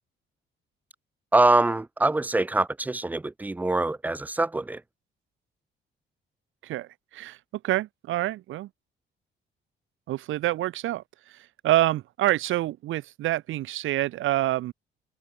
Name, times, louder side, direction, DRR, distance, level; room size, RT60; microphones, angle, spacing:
voice 1, 1.3-4.8, right 2 dB, 10° right, 0.3 m, -24 dB
voice 2, 6.6-7.4 7.6-8.7 10.1-14.7, right 15 dB, 80° right, 1.2 m, -27 dB
open air
cardioid pair, 90°, 20 cm